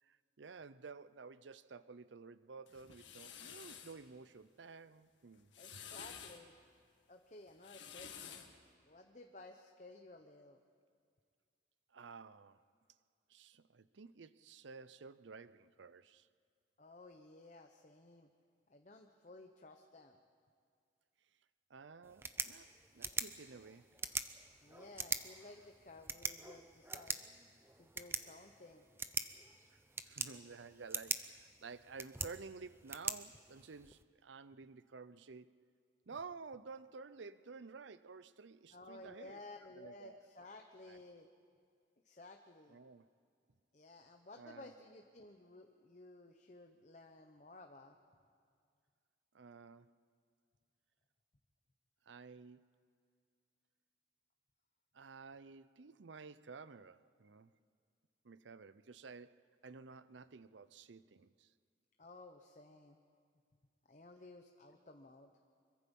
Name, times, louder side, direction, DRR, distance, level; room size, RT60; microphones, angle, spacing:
voice 1, 0.0-5.8 11.9-12.6 13.3-16.3 21.7-24.0 29.7-29.8 30.1-35.5 36.1-40.2 40.9-41.0 42.7-43.1 44.4-44.7 49.3-49.9 52.1-52.7 54.9-57.5 58.2-61.5, right 4 dB, 80° right, 0.6 m, -53 dB
sound 1, 2.7-4.0 5.3-6.4 7.5-8.6, left 8 dB, 85° left, 1.8 m, -51 dB
voice 2, 5.6-6.5 7.1-8.5 8.9-10.6 16.8-18.3 18.7-20.2 24.6-27.2 27.8-28.8 38.7-41.3 42.0-42.8 43.7-48.0 62.0-63.0 63.9-65.3, left 2 dB, 40° left, 0.9 m, -56 dB
sound 2, 22.0-34.0, right 4 dB, 15° right, 0.6 m, -44 dB
25.0 x 23.0 x 5.4 m
head